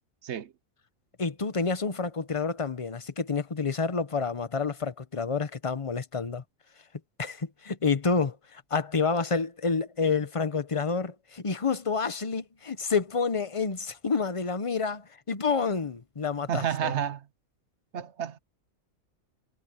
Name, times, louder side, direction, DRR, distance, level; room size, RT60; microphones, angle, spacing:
voice 1, 1.2-6.4 7.2-17.0, left 5 dB, 25° left, 0.8 m, -29 dB
voice 2, 16.5-17.3 17.9-18.4, right 9 dB, 60° right, 1.0 m, -30 dB
omnidirectional pair, 1.5 m